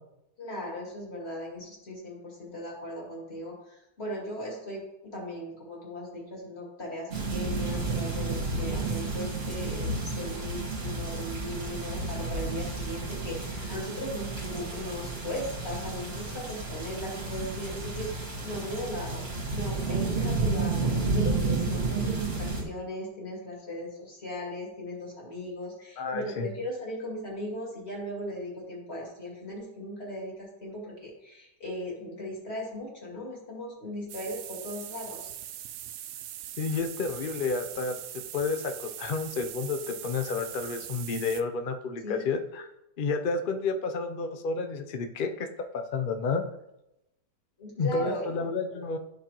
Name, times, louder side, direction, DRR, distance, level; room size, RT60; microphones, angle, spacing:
voice 1, 0.4-19.2 19.5-35.3 42.0-42.3 47.6-48.3, left 1 dB, 40° left, -4 dB, 2.8 m, -38 dB
sound 1, 7.1-22.6, right 3 dB, 45° right, 1.9 m, -31 dB
voice 2, 26.0-26.5 36.6-37.9 38.3-42.7 43.0-45.5 45.7-46.4 47.8-49.0, left 4 dB, 85° left, 6 dB, 0.4 m, -30 dB
sound 2, 34.1-41.4, right 11 dB, 70° right, 1.0 m, -41 dB
12.5 x 5.2 x 3.0 m, 0.88 s
omnidirectional pair, 1.8 m